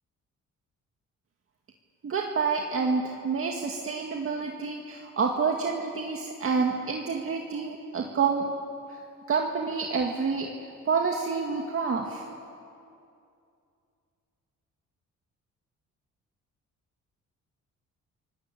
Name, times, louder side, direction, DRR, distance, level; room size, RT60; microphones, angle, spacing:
voice 1, 2.0-8.4 9.3-10.5 10.9-12.2, right 5 dB, 45° right, 1 dB, 2.1 m, -28 dB
28.0 x 18.0 x 8.6 m, 2.5 s
cardioid pair, 90°, 30 cm